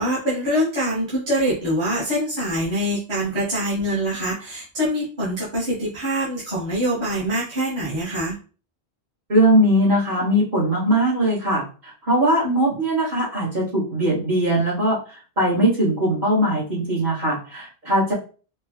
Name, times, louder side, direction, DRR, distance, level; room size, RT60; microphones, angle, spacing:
voice 1, 0.0-8.3, equal, 25° right, -9 dB, 1.3 m, -24 dB
voice 2, 9.3-15.0 15.4-18.1, right 1 dB, 45° right, -8 dB, 2.0 m, -20 dB
4.3 x 2.4 x 2.9 m, 0.38 s
omnidirectional pair, 1.1 m